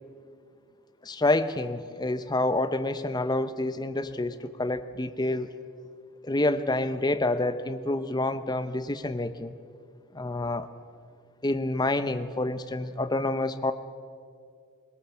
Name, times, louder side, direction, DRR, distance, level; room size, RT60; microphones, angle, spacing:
voice 1, 1.0-5.5 6.2-9.5 10.1-10.7 11.4-13.7, left 2 dB, 20° left, 11 dB, 0.7 m, -28 dB
22.0 x 21.5 x 7.1 m, 2.3 s
head